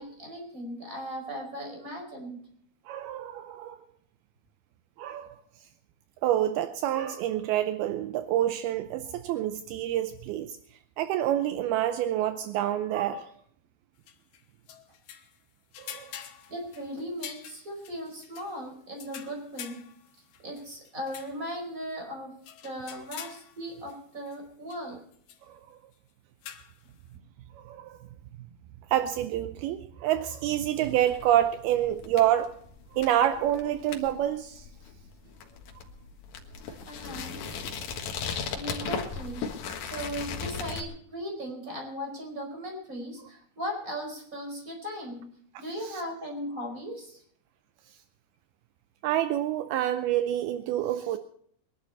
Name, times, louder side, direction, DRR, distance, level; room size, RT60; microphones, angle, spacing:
voice 1, 0.0-2.4 16.5-19.9 20.4-22.4 22.6-25.0 27.1-27.2 36.9-37.5 38.5-45.3 45.6-47.2, equal, 20° right, 2 dB, 4.9 m, -38 dB
voice 2, 2.9-3.8 5.0-5.3 6.2-10.6 11.0-13.3 15.8-16.1 25.5-25.6 27.6-28.0 28.9-32.5 32.9-34.7 36.7-36.8 45.8-46.0 49.0-51.2, right 12 dB, 80° right, 10 dB, 2.6 m, -27 dB
sound 1, 14.1-15.4 15.7-18.5 19.0-21.4 21.9-22.0 22.4-24.0 24.3-24.4 24.7-24.8 25.1-25.4 26.4-26.8, left 9 dB, 85° left, 3.3 m, -46 dB
sound 2, 30.8-40.8, left 6 dB, 60° left, 2.7 m, -38 dB
22.5 x 11.5 x 4.2 m, 0.62 s
omnidirectional pair, 4.5 m